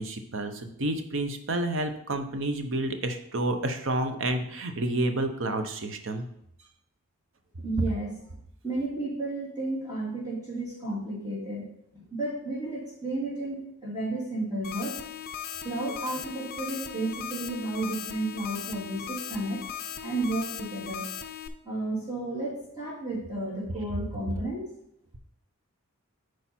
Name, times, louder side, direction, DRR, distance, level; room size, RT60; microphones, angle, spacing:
voice 1, 0.0-6.2, right 1 dB, 60° right, 7 dB, 0.9 m, -30 dB
voice 2, 7.6-8.2 8.6-11.7 11.9-15.0 15.6-19.6 20.0-21.1 21.6-24.8, right 2 dB, 15° right, -6 dB, 2.6 m, -32 dB
sound 1, 14.6-21.5, left 9 dB, 40° left, 0.5 m, -38 dB
9.0 x 4.7 x 4.4 m, 0.74 s
head